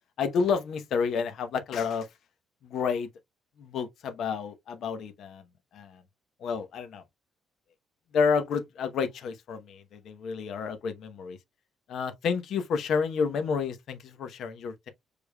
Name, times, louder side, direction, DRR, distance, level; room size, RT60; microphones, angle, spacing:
voice 1, 0.2-2.1 2.6-3.1 3.6-5.4 5.7-6.0 6.4-7.0 8.1-11.4 11.9-14.9, left 5 dB, 60° left, 0.9 m, -30 dB
6.8 x 3.3 x 2.2 m
cardioid pair, 160°, 0 cm